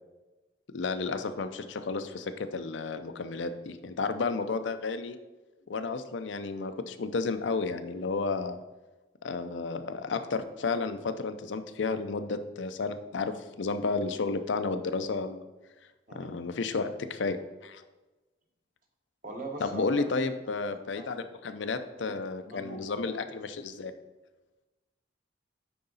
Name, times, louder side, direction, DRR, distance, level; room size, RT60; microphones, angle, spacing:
voice 1, 0.7-5.2 5.7-8.6 9.2-15.4 16.1-17.8 19.6-23.9, left 4 dB, 80° left, 9 dB, 0.5 m, -32 dB
voice 2, 19.2-20.1 20.7-21.1 22.1-22.2 22.4-22.8 23.0-23.2, right 2 dB, 45° right, 1 dB, 1.3 m, -41 dB
9.3 x 3.9 x 4.0 m, 1.1 s
head